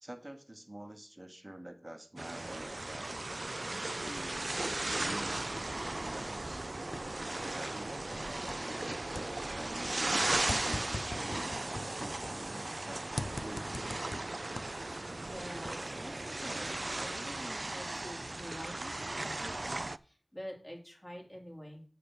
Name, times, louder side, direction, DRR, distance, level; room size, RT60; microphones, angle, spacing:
voice 1, 0.0-3.3 4.0-6.7 7.5-13.9, right 1 dB, 25° right, 7 dB, 1.0 m, -48 dB
sound 1, 2.2-20.0, right 2 dB, 60° right, 0.3 m, -37 dB
sound 2, 3.6-4.8 5.0-8.9 9.1-12.8 13.2-15.3 15.7-17.8, left 2 dB, 60° left, 0.5 m, -45 dB
voice 2, 15.1-21.8, equal, 25° left, 0 dB, 3.0 m, -47 dB
6.6 x 5.8 x 6.9 m, 0.41 s
wide cardioid pair, 50°, 0 cm